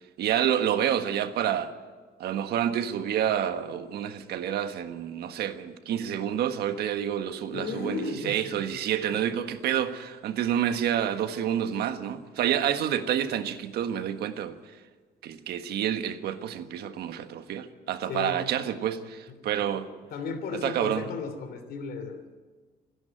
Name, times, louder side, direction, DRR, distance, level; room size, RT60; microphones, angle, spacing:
voice 1, 0.2-1.7 2.2-14.6 15.2-19.9 20.6-21.1, right 10 dB, 70° right, 1.5 m, -28 dB
voice 2, 7.5-8.6 18.1-18.4 19.3-19.7 20.1-22.3, left 4 dB, 70° left, 3.1 m, -35 dB
27.5 x 11.0 x 9.1 m
cardioid pair, 110°, 17 cm